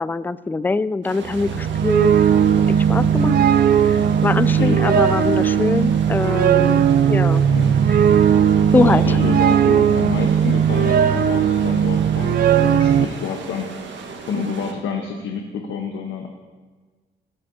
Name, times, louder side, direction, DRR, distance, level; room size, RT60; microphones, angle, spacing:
voice 1, 0.0-2.1 2.7-3.4 3.8-7.5 7.9-8.0 8.7-9.2, left 3 dB, 10° left, 16 dB, 0.3 m, -23 dB
sound 1, 1.0-14.7, right 4 dB, 65° right, 1.6 m, -37 dB
sound 2, 1.3-13.1, right 8 dB, 50° right, 0.6 m, -17 dB
voice 2, 3.0-3.4 4.3-4.8 7.5-7.8 8.7-13.7 14.3-16.3, left 5 dB, 80° left, 2 dB, 1.2 m, -28 dB
17.5 x 9.6 x 2.8 m, 1.4 s
cardioid pair, 90°, 20 cm